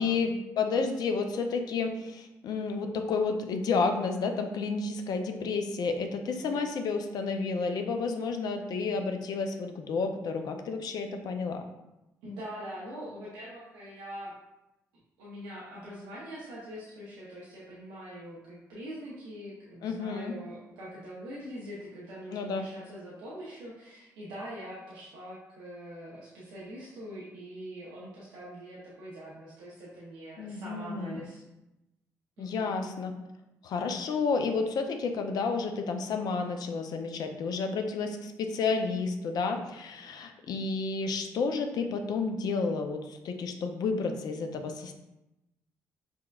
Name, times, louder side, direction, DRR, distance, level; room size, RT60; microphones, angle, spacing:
voice 1, 0.0-11.7 19.8-20.3 22.3-22.6 30.4-31.2 32.4-33.1 33.6-44.9, left 4 dB, 65° left, 6 dB, 0.4 m, -31 dB
voice 2, 6.3-6.7 12.2-14.3 15.2-31.4 32.4-32.7, equal, 85° right, -7 dB, 0.7 m, -43 dB
5.9 x 2.2 x 2.3 m, 0.95 s
supercardioid pair, 50°, 7 cm